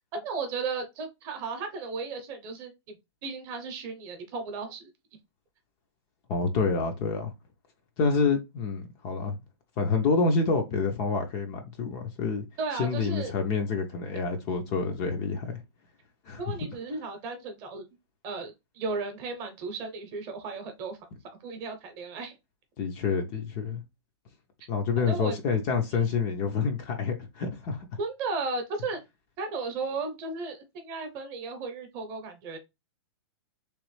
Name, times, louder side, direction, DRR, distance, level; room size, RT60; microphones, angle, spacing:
voice 1, 0.1-3.0 3.2-4.9 12.6-13.3 16.4-17.8 18.2-21.0 21.4-22.4 25.0-25.4 25.9-26.0 28.0-29.0 29.4-32.6, right 4 dB, 30° right, 0.8 m, -35 dB
voice 2, 6.3-7.3 8.0-9.4 9.8-12.4 12.7-15.6 16.3-16.4 22.8-23.8 24.7-27.8, left 4 dB, 25° left, 0.5 m, -27 dB
3.1 x 3.0 x 3.1 m
hypercardioid pair, 160°, 14 cm